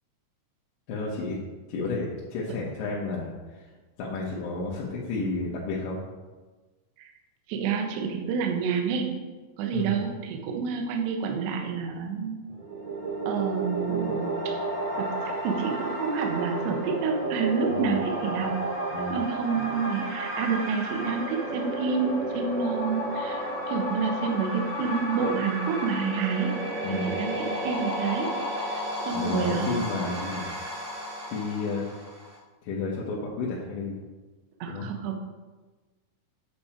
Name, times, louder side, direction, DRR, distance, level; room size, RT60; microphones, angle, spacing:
voice 1, 0.9-1.4 1.7-3.7 4.0-6.0 9.7-10.0 17.7-18.0 18.9-19.2 26.8-27.1 29.1-30.5 31.3-31.9 32.6-34.0 34.7-34.9, left 3 dB, 75° left, -5 dB, 3.4 m, -31 dB
voice 2, 7.5-9.1 9.6-12.4 13.3-14.6 15.0-18.6 18.9-26.6 26.9-29.8 34.6-35.2, right 5 dB, 70° right, 2 dB, 3.1 m, -29 dB
sound 1, 12.5-32.4, right 1 dB, 40° right, 2.9 m, -32 dB
9.5 x 8.7 x 4.5 m, 1.3 s
omnidirectional pair, 5.6 m